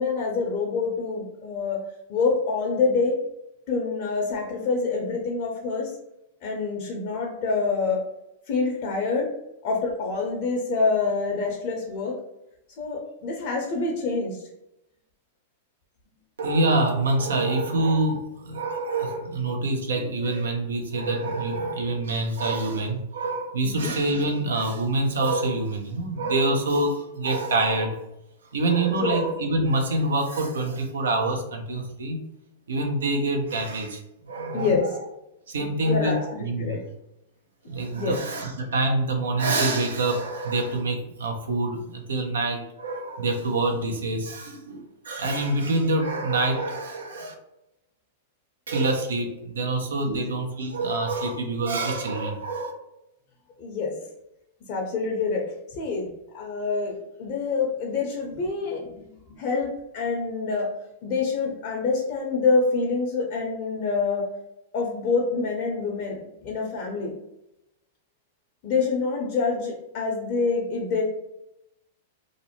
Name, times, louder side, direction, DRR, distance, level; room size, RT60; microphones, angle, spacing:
voice 1, 0.0-1.8 2.1-3.2 3.7-5.9 6.4-8.0 8.5-9.3 9.6-12.2 12.8-14.5 23.6-24.0 28.9-29.2 34.5-34.9 35.8-36.8 37.9-38.2 50.1-50.2 53.6-53.9 54.7-60.7 61.0-64.3 64.7-67.1 68.6-71.0, left 4 dB, 50° left, -1 dB, 0.6 m, -26 dB
voice 2, 16.4-28.0 28.5-32.3 32.7-35.0 35.5-36.8 37.7-47.3 48.7-52.7, right 2 dB, 75° right, 4 dB, 0.5 m, -26 dB
2.5 x 2.0 x 2.9 m, 0.86 s
hypercardioid pair, 105°, 0 cm